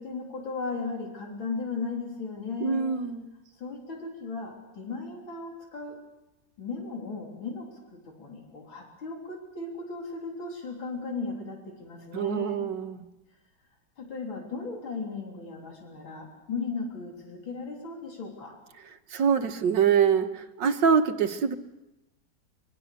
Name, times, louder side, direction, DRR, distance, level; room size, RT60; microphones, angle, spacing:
voice 1, 0.0-2.9 3.5-6.0 6.6-12.6 14.0-18.6, left 4 dB, 85° left, 0 dB, 4.2 m, -36 dB
voice 2, 2.6-3.2 12.1-13.0 19.1-21.5, right 7 dB, 70° right, 6 dB, 1.9 m, -24 dB
24.5 x 24.0 x 6.8 m, 1.0 s
omnidirectional pair, 2.1 m